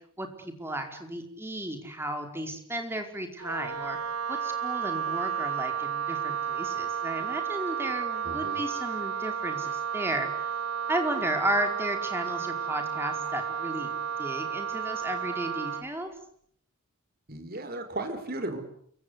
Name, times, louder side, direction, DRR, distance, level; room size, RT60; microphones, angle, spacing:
voice 1, 0.2-10.3 10.9-16.1, right 1 dB, 10° right, 4 dB, 4.8 m, -34 dB
Wind instrument woodwind instrument, 3.4-15.9, right 7 dB, 80° right, 1.3 m, -32 dB
voice 2, 8.2-8.6 17.3-18.6, right 2 dB, 45° right, 7 dB, 5.3 m, -35 dB
28.5 x 24.5 x 8.4 m, 0.66 s
head